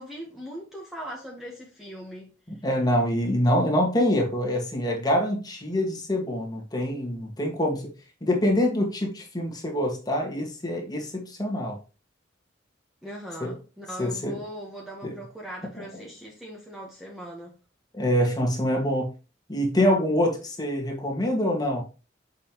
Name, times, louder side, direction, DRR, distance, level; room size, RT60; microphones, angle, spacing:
voice 1, 0.0-2.3 13.0-17.5, equal, ahead, 1.2 m, -40 dB
voice 2, 2.5-7.9 8.2-11.8 13.4-13.5 14.0-14.4 15.0-15.1 15.8-15.9 17.9-19.1 19.5-21.8, equal, 20° left, 1.7 m, -25 dB
6.7 x 5.4 x 3.0 m
head